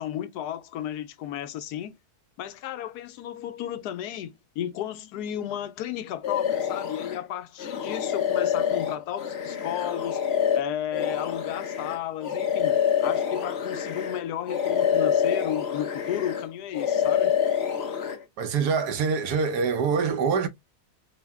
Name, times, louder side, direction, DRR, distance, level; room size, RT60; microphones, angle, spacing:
voice 1, 0.0-2.0 2.4-10.3 10.5-17.3, left 11 dB, 85° left, 1.1 m, -33 dB
sound 1, 6.2-7.2 7.6-14.2 14.5-16.5 16.7-18.2, left 8 dB, 50° left, 0.8 m, -26 dB
voice 2, 18.4-20.5, right 5 dB, 85° right, 1.3 m, -25 dB
4.6 x 2.1 x 3.4 m
omnidirectional pair, 1.7 m